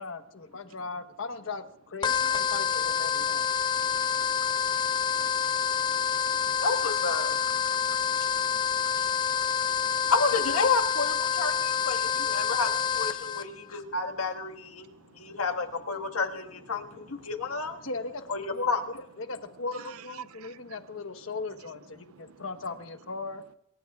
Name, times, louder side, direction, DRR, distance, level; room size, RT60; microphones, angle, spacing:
voice 1, 0.0-3.4 17.8-18.2 18.5-18.7 19.2-23.4, left 3 dB, 65° left, 1.2 m, -38 dB
sound 1, 2.0-13.4, left 8 dB, 20° left, 0.8 m, -27 dB
voice 2, 4.4-4.9 5.4-5.5 7.8-9.1 12.1-12.5 14.8-15.2 19.7-20.0 20.4-20.8 22.0-22.4, right 7 dB, 85° right, 0.5 m, -52 dB
voice 3, 6.6-7.4 10.1-14.9 15.2-17.8 18.3-18.8, left 4 dB, 90° left, 1.7 m, -30 dB
26.0 x 23.0 x 2.4 m
head